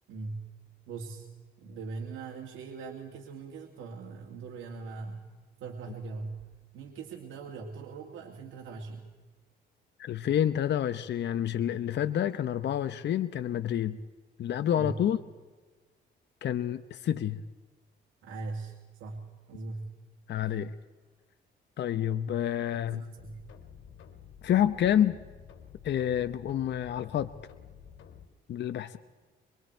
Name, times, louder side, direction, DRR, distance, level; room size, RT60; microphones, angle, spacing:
voice 1, 0.1-0.5 0.9-1.3 1.6-5.3 5.6-6.5 6.7-9.1 14.7-14.9 18.2-19.9 20.4-20.5 22.7-23.5, right 4 dB, 85° right, 1 dB, 2.2 m, -41 dB
voice 2, 10.0-14.0 14.4-15.2 16.4-17.4 20.3-20.7 21.8-23.0 24.4-25.2 25.8-27.3 28.5-29.0, left 10 dB, 60° left, 10 dB, 0.8 m, -28 dB
sound 1, 23.2-28.2, left 7 dB, 80° left, 2.6 m, -51 dB
25.5 x 23.0 x 4.5 m, 1.3 s
cardioid pair, 90°, 20 cm